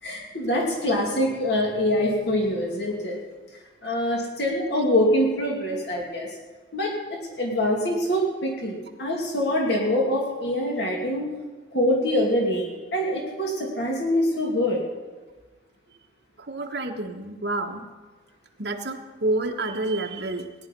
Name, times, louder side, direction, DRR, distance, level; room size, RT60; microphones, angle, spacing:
voice 1, 0.0-3.2 3.8-6.3 6.7-11.3 11.7-14.8, left 1 dB, 70° left, -1 dB, 2.4 m, -24 dB
voice 2, 16.4-17.8 18.6-20.5, right 2 dB, 65° right, 1 dB, 1.4 m, -29 dB
18.0 x 10.5 x 5.3 m, 1.3 s
head